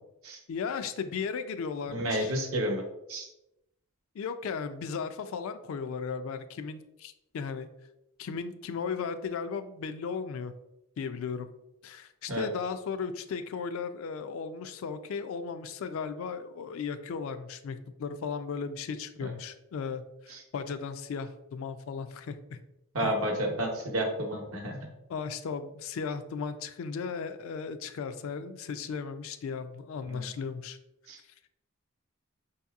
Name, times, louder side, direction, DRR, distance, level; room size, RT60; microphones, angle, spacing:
voice 1, 0.5-2.4 4.1-7.7 8.2-10.5 11.0-11.5 11.8-22.6 23.0-23.1 25.1-30.8, left 5 dB, 65° left, 10 dB, 0.3 m, -36 dB
voice 2, 1.9-2.8 3.1-3.3 12.3-12.5 19.2-19.3 20.3-20.4 22.9-24.8 30.1-30.3 31.1-31.2, right 1 dB, 70° right, 2 dB, 0.8 m, -31 dB
5.0 x 2.8 x 2.3 m, 0.89 s
head